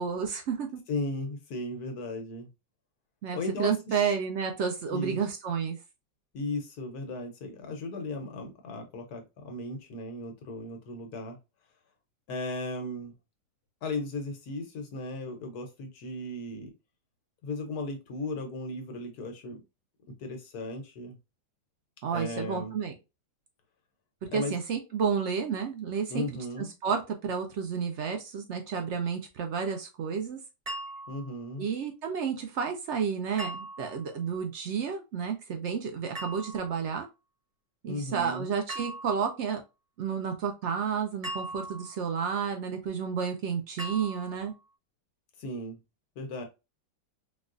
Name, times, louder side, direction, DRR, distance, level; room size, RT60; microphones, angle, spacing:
voice 1, 0.0-0.8 3.2-5.8 22.0-22.9 24.3-26.3 26.8-30.4 31.6-37.1 37.8-39.6 40.0-44.5, right 6 dB, 70° right, 5 dB, 0.6 m, -31 dB
voice 2, 0.9-2.5 3.3-4.1 4.9-5.2 6.3-11.4 12.3-13.1 13.8-16.7 17.4-19.6 20.2-21.2 22.1-22.7 24.3-24.5 26.1-26.7 31.1-31.6 37.9-38.5 45.4-45.8 46.2-46.4, left 2 dB, 70° left, 4 dB, 1.3 m, -36 dB
sound 1, 30.7-31.4 33.4-34.1 36.1-36.8 38.7-39.4 41.2-42.1 43.8-44.5, right 1 dB, 40° right, 1.1 m, -40 dB
4.1 x 2.4 x 2.4 m, 0.26 s
omnidirectional pair, 1.8 m